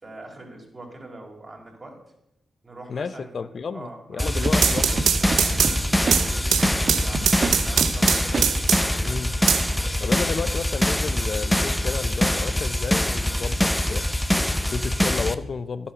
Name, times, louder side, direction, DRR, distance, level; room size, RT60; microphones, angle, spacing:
voice 1, 0.0-2.0 2.6-4.5 5.1-9.1, right 2 dB, 40° right, 0 dB, 4.3 m, -42 dB
voice 2, 2.9-5.1 9.0-9.3 10.0-14.0 14.3-15.9, left 5 dB, 60° left, 12 dB, 0.7 m, -32 dB
sound 1, 4.2-15.3, left 1 dB, 10° left, 0.8 m, -24 dB
Scratching (performance technique), 4.4-5.7 6.1-6.2 6.6-7.9 8.3-8.5, right 4 dB, 55° right, 1.3 m, -26 dB
sound 2, 4.4-9.0 9.5-10.4, right 8 dB, 85° right, 0.7 m, -23 dB
11.5 x 8.7 x 6.7 m, 0.82 s
cardioid pair, 55°, 0 cm